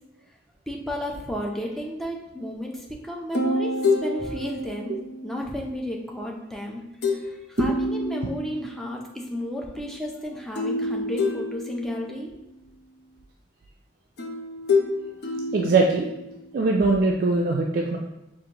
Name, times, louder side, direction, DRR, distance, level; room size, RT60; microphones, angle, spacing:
voice 1, 0.7-5.0 5.2-6.8 7.1-12.3, equal, ahead, -1 dB, 0.5 m, -33 dB
sound 1, 3.3-5.6 7.0-7.3 7.6-8.9 10.6-12.3 14.2-16.5, left 2 dB, 60° left, 0.5 m, -27 dB
voice 2, 15.5-16.1 16.5-18.0, right 3 dB, 50° right, 0 dB, 0.3 m, -21 dB
5.0 x 2.5 x 2.9 m, 0.95 s
head